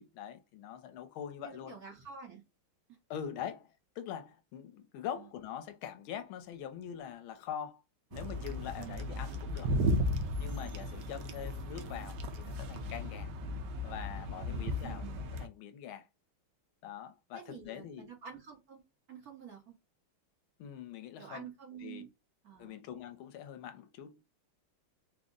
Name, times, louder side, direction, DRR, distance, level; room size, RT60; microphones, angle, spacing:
voice 1, 0.0-1.8 3.1-7.8 8.1-9.7 10.4-13.3 13.8-15.0 15.4-16.1 16.8-18.1 20.6-21.5 21.8-22.0 22.6-24.2, left 9 dB, 80° left, 1.4 m, -43 dB
voice 2, 1.4-2.4 5.1-5.3 8.8-9.1 11.1-11.6 14.4-15.2 17.3-18.8 19.1-19.7 21.2-22.1 22.4-22.8, right 7 dB, 50° right, 1.3 m, -49 dB
sound 1, 8.1-15.5, equal, 70° right, 1.1 m, -35 dB
3.8 x 2.0 x 3.6 m
omnidirectional pair, 2.3 m